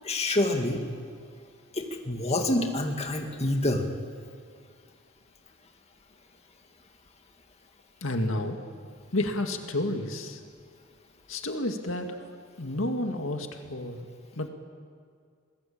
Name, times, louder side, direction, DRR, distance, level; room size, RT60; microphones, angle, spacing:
voice 1, 0.0-0.8 1.7-3.9, left 1 dB, 30° left, 3 dB, 2.3 m, -27 dB
voice 2, 8.0-8.6 9.1-10.4 11.3-14.1 14.4-14.5, left 1 dB, 75° left, 4 dB, 2.2 m, -31 dB
28.5 x 21.0 x 8.7 m, 2.2 s
head